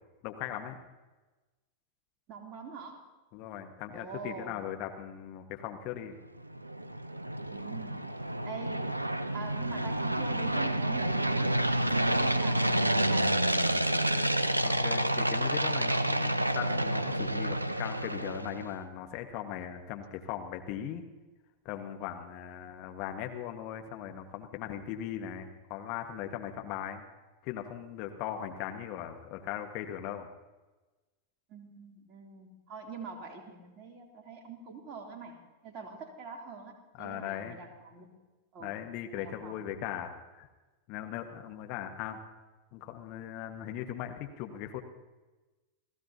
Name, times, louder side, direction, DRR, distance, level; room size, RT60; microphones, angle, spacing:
voice 1, 0.2-0.8 3.3-6.1 14.6-21.0 21.6-27.0 27.4-30.3 37.0-37.6 38.6-40.5 40.9-42.2 42.7-44.8, left 10 dB, 45° left, 5 dB, 1.5 m, -39 dB
voice 2, 2.3-3.0 3.9-4.6 7.5-8.1 8.4-8.9 9.3-11.5 12.0-14.4 31.5-35.4 35.6-38.1 38.5-38.8 39.1-39.8, right 4 dB, 35° right, 1 dB, 3.0 m, -44 dB
sound 1, 6.4-18.7, right 1 dB, 85° right, 0.6 m, -29 dB
29.0 x 15.5 x 2.8 m, 1.2 s
figure-of-eight pair, 90°, 0 cm